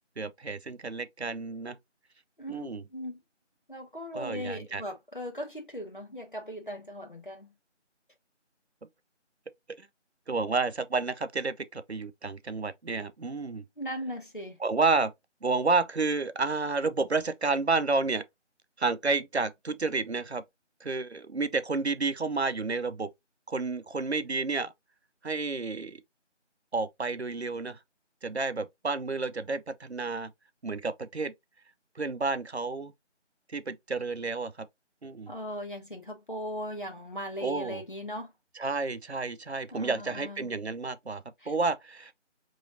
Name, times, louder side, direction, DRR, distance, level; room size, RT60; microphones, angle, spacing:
voice 1, 0.2-1.8 2.5-2.8 4.1-4.8 9.8-9.9 10.3-13.6 14.6-15.1 15.4-18.2 18.8-20.4 20.8-23.1 23.5-24.7 25.2-26.0 26.7-27.8 28.2-30.3 30.6-31.3 32.0-32.9 33.5-34.7 35.0-35.3 37.4-37.8 38.5-42.1, right 3 dB, 60° right, 0.6 m, -30 dB
voice 2, 2.4-3.2 3.7-7.5 13.8-14.6 35.3-38.3 39.7-40.5 41.4-41.5, equal, 45° left, 1.2 m, -38 dB
5.3 x 3.1 x 2.6 m
figure-of-eight pair, 180°, 36 cm